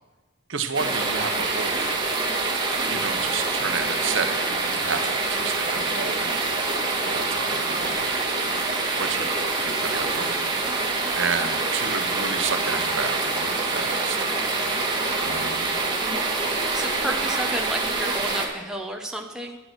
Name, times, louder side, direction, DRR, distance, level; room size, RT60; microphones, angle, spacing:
voice 1, 0.5-1.9 2.9-6.3 7.0-8.2 9.0-9.3 9.6-10.5 11.1-14.3 15.2-15.7, right 5 dB, 65° right, 8 dB, 1.0 m, -31 dB
sound 1, 0.7-18.5, right 3 dB, 20° right, 1.8 m, -25 dB
voice 2, 16.7-19.6, right 1 dB, 5° right, 1 dB, 1.0 m, -32 dB
10.5 x 9.3 x 6.2 m, 1.2 s
head